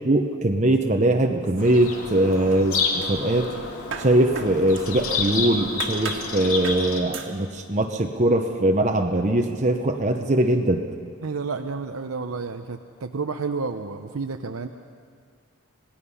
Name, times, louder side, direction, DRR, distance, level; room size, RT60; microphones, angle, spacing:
voice 1, 0.0-3.5 4.0-10.8, right 1 dB, 35° right, 3 dB, 0.9 m, -21 dB
sound 1, 1.4-2.2 2.5-5.3 5.8-6.3 6.6-6.9 7.1-7.4, right 5 dB, 60° right, 1.7 m, -37 dB
Bird vocalization bird call bird song, 1.6-7.0, left 4 dB, 90° left, 2.4 m, -29 dB
voice 2, 11.2-14.7, right 4 dB, 85° right, 6 dB, 0.8 m, -30 dB
27.0 x 19.0 x 5.6 m, 2.1 s
head